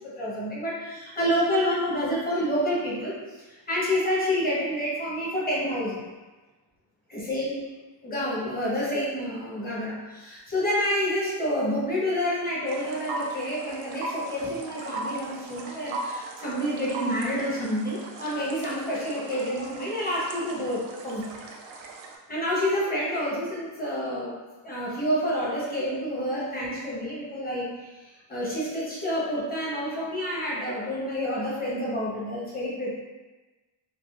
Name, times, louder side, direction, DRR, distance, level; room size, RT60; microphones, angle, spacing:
voice 1, 0.0-6.0 7.1-7.6 8.0-21.2 22.3-24.3 24.6-32.9, equal, 20° left, -7 dB, 0.9 m, -28 dB
sound 1, 12.7-22.2, right 2 dB, 80° right, 0.6 m, -38 dB
3.5 x 2.3 x 2.5 m, 1.2 s
wide cardioid pair, 140°, 46 cm